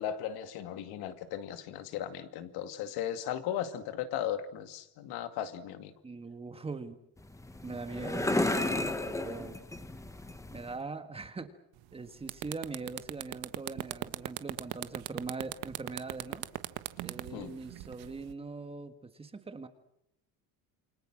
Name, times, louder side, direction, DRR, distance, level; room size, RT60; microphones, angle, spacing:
voice 1, 0.0-5.9 17.3-17.5, left 10 dB, 75° left, 9 dB, 2.4 m, -36 dB
voice 2, 6.0-7.0 7.6-9.6 10.5-11.5 11.9-16.4 17.0-19.7, right 4 dB, 15° right, 9 dB, 1.6 m, -41 dB
sound 1, 7.2-10.8, left 2 dB, 10° left, 1.6 m, -33 dB
sound 2, 11.8-11.9 12.2-18.3, right 18 dB, 75° right, 1.5 m, -38 dB
28.5 x 24.5 x 6.3 m, 0.76 s
cardioid pair, 160°, 38 cm